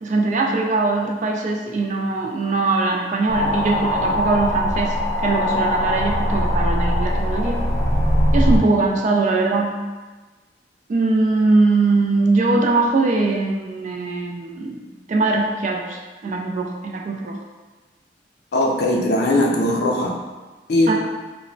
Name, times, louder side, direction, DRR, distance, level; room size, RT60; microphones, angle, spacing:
voice 1, 0.0-7.6 8.3-9.7 10.9-14.8 15.1-17.4 20.9-21.0, right 3 dB, 45° right, 1 dB, 0.3 m, -21 dB
sound 1, 3.3-8.6, equal, 5° left, 0.8 m, -21 dB
voice 2, 18.5-20.2 20.7-20.9, left 1 dB, 65° left, 0 dB, 0.4 m, -19 dB
3.0 x 2.1 x 2.5 m, 1.3 s
head